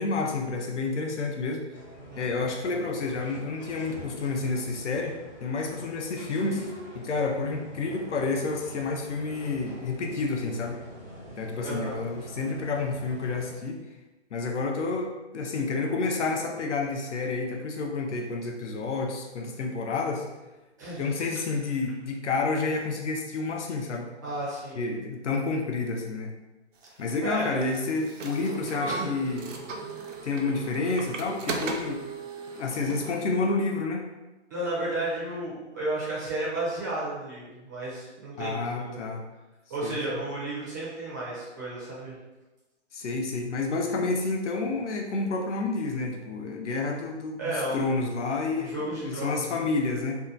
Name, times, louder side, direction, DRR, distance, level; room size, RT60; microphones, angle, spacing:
voice 1, 0.0-1.7 2.2-10.8 11.4-13.8 14.3-20.3 21.0-24.1 24.7-26.3 27.0-29.5 30.2-32.0 32.6-34.1 38.4-39.2 39.8-40.2 42.9-50.2, left 3 dB, 75° left, 1 dB, 0.5 m, -29 dB
sound 1, 1.7-13.5, equal, 25° left, 0.6 m, -45 dB
voice 2, 11.6-12.0 20.8-21.1 24.2-24.8 27.2-27.6 28.9-29.1 34.5-39.0 39.7-42.2 47.4-47.9 48.5-49.6, right 2 dB, 15° right, -8 dB, 0.4 m, -33 dB
sound 2, 26.8-33.2, right 4 dB, 90° right, 0.5 m, -37 dB
2.7 x 2.2 x 2.4 m, 1.1 s
hypercardioid pair, 140°, 36 cm